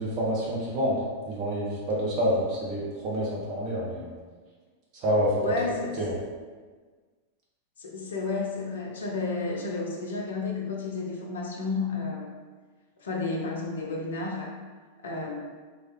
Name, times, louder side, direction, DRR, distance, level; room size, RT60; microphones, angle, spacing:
voice 1, 0.0-4.1 5.0-5.5 6.0-6.2, equal, 40° right, -6 dB, 0.8 m, -27 dB
voice 2, 5.4-6.0 7.8-12.3 13.0-14.6 15.0-15.4, left 3 dB, 65° left, 0 dB, 0.5 m, -31 dB
3.3 x 2.3 x 3.0 m, 1.5 s
figure-of-eight pair, 90°, 0 cm